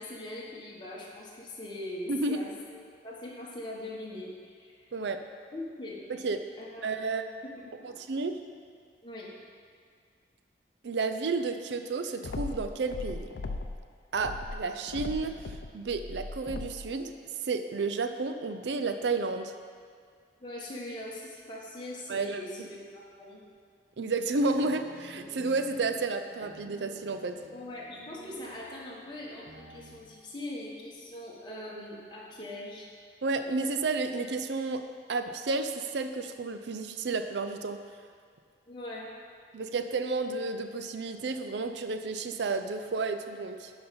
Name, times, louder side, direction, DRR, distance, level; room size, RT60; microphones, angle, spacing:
voice 1, 0.0-2.8 3.0-4.7 5.5-6.0 6.6-8.0 9.0-9.3 20.4-23.4 27.5-32.9 38.7-39.1, left 1 dB, 25° left, -5 dB, 1.4 m, -41 dB
voice 2, 2.1-2.4 4.9-5.2 6.1-6.4 6.8-7.2 7.8-8.4 10.8-13.3 14.1-15.3 15.7-17.1 17.4-19.5 22.1-22.4 24.0-27.4 33.2-34.8 35.1-37.8 39.5-43.7, right 3 dB, 75° right, 7 dB, 0.5 m, -31 dB
sound 1, 12.2-13.8 14.1-16.9, left 3 dB, 80° left, 0.5 m, -38 dB
sound 2, 24.4-30.0, equal, 55° right, 1.2 m, -50 dB
11.0 x 5.3 x 4.3 m, 2.1 s
head